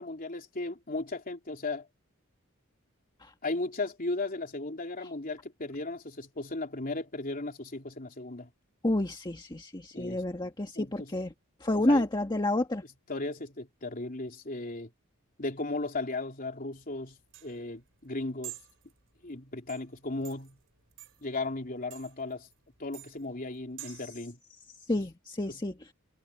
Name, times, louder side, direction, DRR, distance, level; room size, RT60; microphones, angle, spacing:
voice 1, 0.0-1.9 3.4-8.5 9.9-10.2 10.8-11.1 11.7-12.1 13.1-14.9 15.4-17.2 17.4-18.6 19.2-20.6 21.2-22.5 22.8-24.4 25.5-25.6, left 2 dB, 40° left, 3.4 m, -36 dB
voice 2, 8.8-11.3 11.6-12.8 24.9-25.7, left 1 dB, 20° left, 1.6 m, -29 dB
sound 1, 16.8-24.1, right 17 dB, 65° right, 7.2 m, -50 dB
head